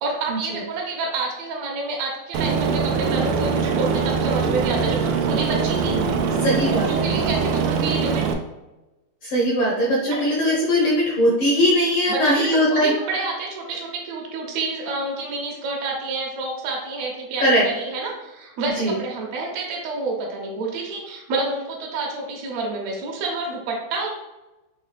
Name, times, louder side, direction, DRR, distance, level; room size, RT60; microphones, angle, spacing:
voice 1, 0.0-6.0 7.0-8.3 10.1-10.3 12.1-24.1, right 3 dB, 70° right, -1 dB, 1.8 m, -28 dB
Aircraft, 2.3-8.3, right 5 dB, 90° right, 1.5 m, -22 dB
voice 2, 6.4-6.9 9.2-12.9 17.4-17.6 18.8-18.9, equal, 75° left, -4 dB, 1.2 m, -20 dB
5.5 x 2.7 x 3.3 m, 1.0 s
omnidirectional pair, 3.6 m